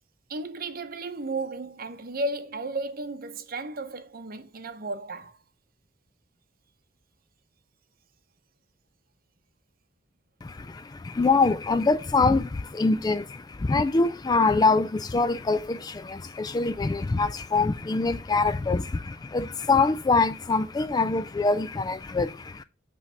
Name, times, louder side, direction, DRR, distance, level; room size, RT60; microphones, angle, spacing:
voice 1, 0.3-5.4, right 2 dB, 50° right, 0.8 m, -34 dB
voice 2, 10.4-22.6, left 3 dB, 20° left, 0.3 m, -24 dB
8.3 x 3.3 x 5.5 m
head